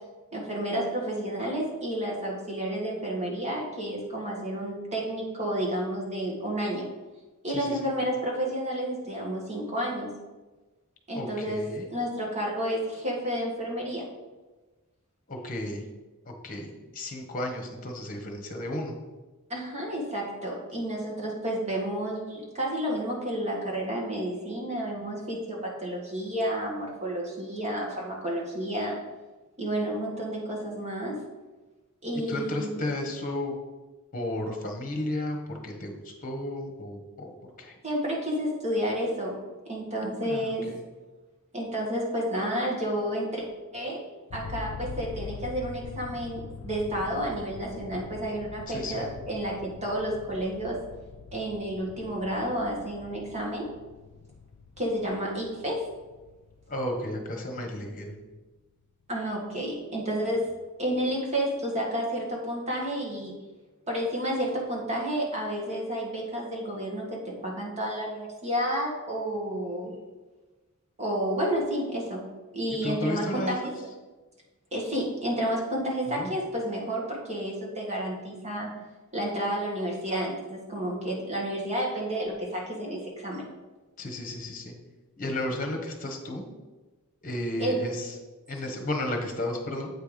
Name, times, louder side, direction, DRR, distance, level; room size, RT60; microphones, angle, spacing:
voice 1, 0.3-6.8 7.4-10.1 11.1-11.6 11.9-14.1 19.5-29.0 29.6-31.2 32.0-32.8 37.8-39.4 39.7-40.7 41.5-43.5 43.7-44.0 44.3-50.8 51.3-53.7 54.8-55.8 59.1-60.5 60.8-63.3 63.9-69.9 71.0-72.2 72.5-73.7 74.7-78.7 79.1-83.4 87.6-87.9, equal, 30° right, -2 dB, 1.8 m, -30 dB
voice 2, 7.5-7.9 11.1-11.9 15.3-15.8 16.2-18.9 32.1-33.5 34.1-37.3 37.6-37.7 40.0-40.8 48.7-49.1 56.7-58.2 72.8-73.7 76.1-76.4 84.0-84.7 85.2-86.4 87.2-88.1 88.5-89.9, left 1 dB, 40° left, 3 dB, 1.3 m, -33 dB
sound 1, 44.3-57.9, left 5 dB, 85° left, 0.4 m, -44 dB
8.1 x 4.5 x 5.1 m, 1.2 s
head